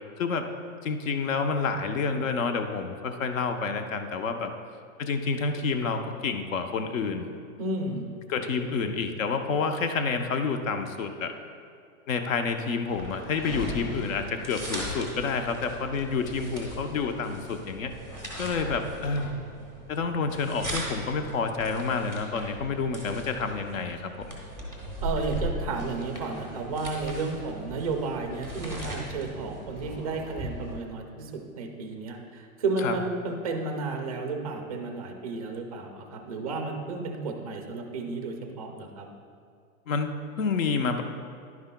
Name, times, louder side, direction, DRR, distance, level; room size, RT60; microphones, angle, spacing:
voice 1, 0.8-4.5 5.0-7.3 8.3-11.3 12.1-17.9 18.4-19.3 19.9-24.1 32.8-33.0 39.9-41.0, left 4 dB, 60° left, 7 dB, 0.8 m, -29 dB
voice 2, 7.6-8.2 25.0-39.1, right 3 dB, 25° right, 3 dB, 0.4 m, -32 dB
sound 1, 12.9-30.7, equal, 10° left, 0.8 m, -38 dB
10.5 x 9.6 x 2.2 m, 2.3 s
supercardioid pair, 170°, 44 cm